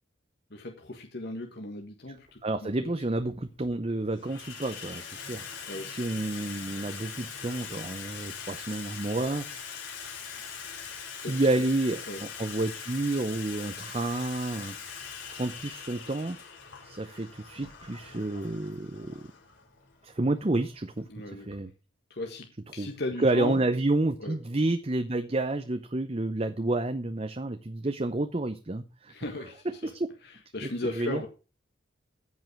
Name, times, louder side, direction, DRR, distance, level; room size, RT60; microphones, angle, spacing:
voice 1, 0.5-2.9 5.7-5.9 11.2-11.5 12.1-12.2 21.1-21.7 22.1-22.5 22.7-23.6 24.2-24.4 29.1-29.9 30.2-31.3, left 2 dB, 55° left, 1.5 m, -37 dB
Water tap faucet / Sink (filling or washing), 2.2-2.4 3.3-3.7 4.0-21.6, left 6 dB, 75° left, 4.0 m, -42 dB
voice 2, 2.4-9.5 11.3-14.8 15.3-16.4 16.8-19.3 20.0-21.7 22.8-22.9 23.2-29.1 29.8-30.1 30.6-31.2, right 2 dB, 30° right, 0.7 m, -30 dB
15.0 x 5.5 x 6.0 m
head